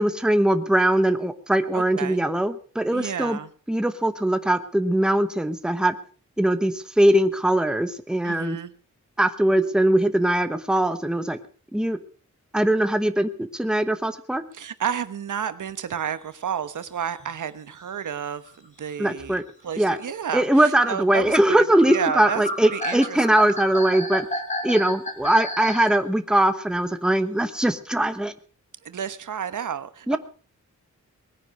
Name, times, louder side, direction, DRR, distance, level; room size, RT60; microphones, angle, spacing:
voice 1, 0.0-3.4 3.7-5.9 6.4-8.6 9.2-11.4 11.7-12.0 12.5-14.4 19.0-19.4 19.8-20.0 20.3-24.3 24.6-28.3 30.1-30.2, right 1 dB, 5° right, 9 dB, 1.0 m, -21 dB
voice 2, 1.7-2.2 2.9-3.5 8.2-8.7 14.5-23.5 28.8-30.2, right 8 dB, 80° right, 12 dB, 1.2 m, -31 dB
sound 1, 16.8-16.9 17.2-17.4 18.2-18.3 18.4-18.6 19.2-19.4 19.9-20.0 20.7-25.9, left 1 dB, 25° left, 3.2 m, -32 dB
20.0 x 10.0 x 6.4 m, 0.42 s
wide cardioid pair, 165°, 31 cm